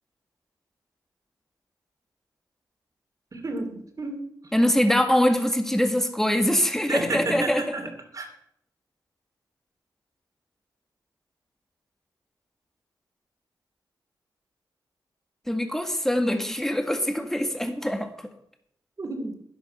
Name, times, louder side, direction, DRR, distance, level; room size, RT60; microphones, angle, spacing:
voice 1, 3.3-4.3 6.9-8.3 19.0-19.3, right 2 dB, 45° right, 3 dB, 3.1 m, -31 dB
voice 2, 4.5-7.6 15.5-18.3, left 1 dB, 5° left, 6 dB, 1.9 m, -23 dB
11.5 x 11.0 x 5.8 m, 0.72 s
cardioid pair, 65°, 8 cm